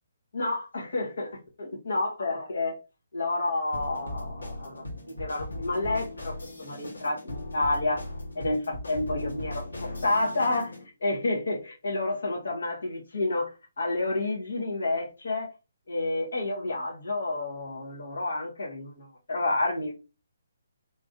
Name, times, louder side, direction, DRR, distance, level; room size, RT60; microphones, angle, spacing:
voice 1, 0.3-2.7 3.1-8.0 8.3-10.7 11.0-15.5 15.9-19.9, left 2 dB, 65° left, 1.3 m, -30 dB
sound 1, 3.7-10.8, left 2 dB, 85° left, 1.3 m, -38 dB
3.5 x 3.0 x 2.6 m
figure-of-eight pair, 140°, 0 cm